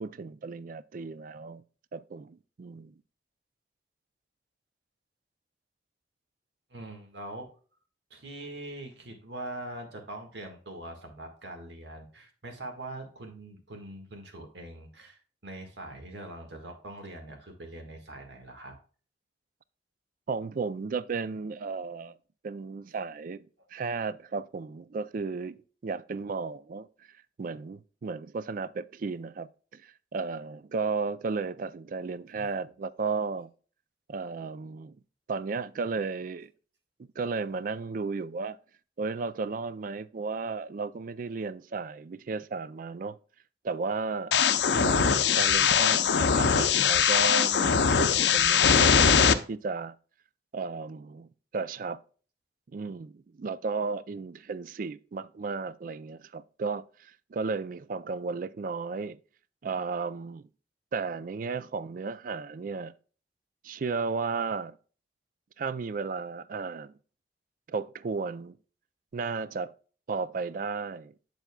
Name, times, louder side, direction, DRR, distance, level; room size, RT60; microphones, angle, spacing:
voice 1, 0.0-1.6 1.9-2.9 20.3-22.1 22.4-23.4 23.7-26.9 27.4-33.5 34.1-35.0 35.3-36.5 37.2-38.6 39.0-43.2 43.6-44.4 44.8-49.9 50.5-51.3 51.5-52.0 52.7-59.2 59.6-60.4 60.9-62.9 63.6-64.8 65.6-66.9 67.7-68.6 69.1-69.7 70.1-71.1, right 4 dB, 50° right, 0.4 m, -34 dB
voice 2, 6.7-7.5 8.1-18.8 32.3-32.7, right 1 dB, 85° right, 1.7 m, -43 dB
sound 1, 44.3-49.3, left 7 dB, 70° left, 0.5 m, -22 dB
7.7 x 7.2 x 2.2 m
head